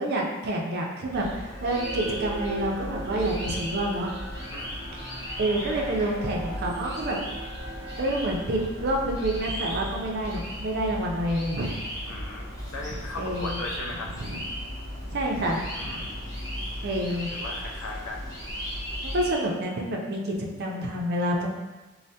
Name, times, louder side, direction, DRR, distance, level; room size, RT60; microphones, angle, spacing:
voice 1, 0.0-4.1 5.4-7.2 8.0-11.9 12.1-12.2 12.9-13.6 14.2-14.4 15.1-16.0 16.8-17.3 19.0-21.5, right 1 dB, 50° right, -1 dB, 0.4 m, -28 dB
sound 1, 1.1-19.4, equal, 15° left, 0.9 m, -36 dB
sound 2, 1.2-10.7, right 1 dB, 30° right, 0.8 m, -42 dB
voice 2, 4.5-5.0 12.1-12.5 12.7-14.1 15.6-16.3 17.3-18.3, left 2 dB, 70° left, 0 dB, 0.4 m, -38 dB
3.2 x 2.0 x 2.7 m, 1.2 s
head